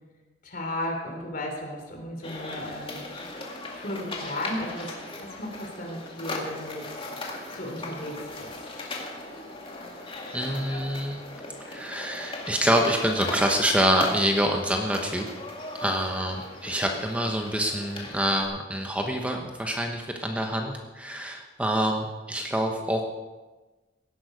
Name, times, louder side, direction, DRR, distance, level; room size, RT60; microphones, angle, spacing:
voice 1, 0.4-3.0 3.7-6.9 7.5-8.9, left 1 dB, 50° left, 2 dB, 3.2 m, -35 dB
sound 1, 2.2-18.4, left 2 dB, 30° left, 2.2 m, -38 dB
voice 2, 10.3-11.2 11.7-15.3 15.8-23.0, equal, 5° right, 2 dB, 1.0 m, -26 dB
17.0 x 11.0 x 5.1 m, 1.2 s
head